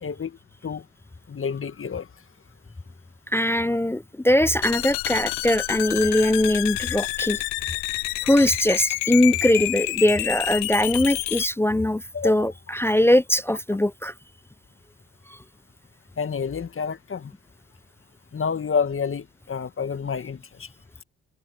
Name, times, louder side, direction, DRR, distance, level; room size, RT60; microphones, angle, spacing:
voice 1, 0.0-0.4 0.6-0.8 1.3-2.1 12.1-12.5 16.2-17.3 18.3-20.7, left 6 dB, 40° left, 1.8 m, -29 dB
voice 2, 3.3-7.4 8.2-14.1, left 1 dB, 10° left, 0.3 m, -21 dB
sound 1, 4.6-11.5, left 23 dB, 85° left, 0.9 m, -28 dB
hypercardioid pair, 45°, 33 cm